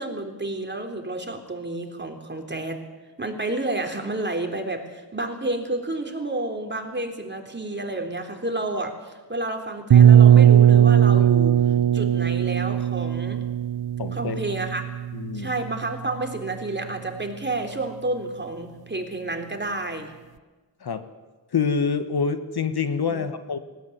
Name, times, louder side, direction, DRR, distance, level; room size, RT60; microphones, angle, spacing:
voice 1, 0.0-2.8 3.2-13.4 14.1-14.9 15.3-20.1 23.1-23.3, right 2 dB, 25° right, 4 dB, 3.6 m, -30 dB
sound 1, 9.9-15.7, right 10 dB, 60° right, 0.9 m, -17 dB
voice 2, 14.0-14.4 15.1-15.5 20.8-21.0 21.5-23.6, left 5 dB, 65° left, 10 dB, 1.5 m, -26 dB
19.5 x 17.0 x 9.9 m, 1.3 s
cardioid pair, 65°, 42 cm